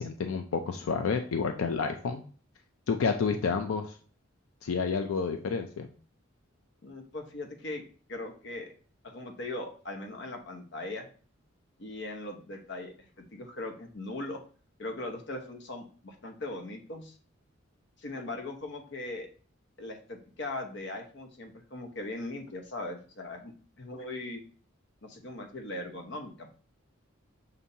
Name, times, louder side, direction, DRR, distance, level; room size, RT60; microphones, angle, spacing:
voice 1, 0.0-2.2 2.9-4.0 4.6-5.9, left 5 dB, 85° left, 6 dB, 0.4 m, -30 dB
voice 2, 6.8-7.8 8.1-8.7 9.0-11.1 11.8-14.4 14.8-17.1 18.0-19.3 19.8-24.4 25.0-26.6, left 2 dB, 55° left, 4 dB, 0.8 m, -39 dB
6.8 x 2.7 x 2.7 m, 0.41 s
head